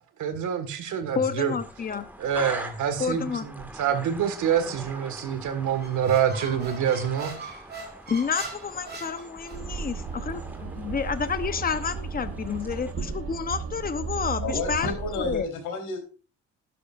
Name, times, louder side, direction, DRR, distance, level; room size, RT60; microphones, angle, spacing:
voice 1, 0.2-1.5 2.2-7.4, right 8 dB, 80° right, 1.8 m, -26 dB
voice 2, 1.1-2.1 3.0-3.5 8.1-15.5, left 6 dB, 30° left, 0.9 m, -30 dB
sound 1, 1.6-12.9, right 1 dB, 5° right, 1.9 m, -44 dB
Squeak, 5.7-9.8, right 2 dB, 35° right, 2.4 m, -41 dB
sound 2, 9.5-15.4, right 5 dB, 50° right, 1.2 m, -35 dB
voice 3, 14.4-16.0, left 3 dB, 90° left, 3.9 m, -31 dB
11.5 x 11.5 x 2.5 m
cardioid pair, 90°, 30 cm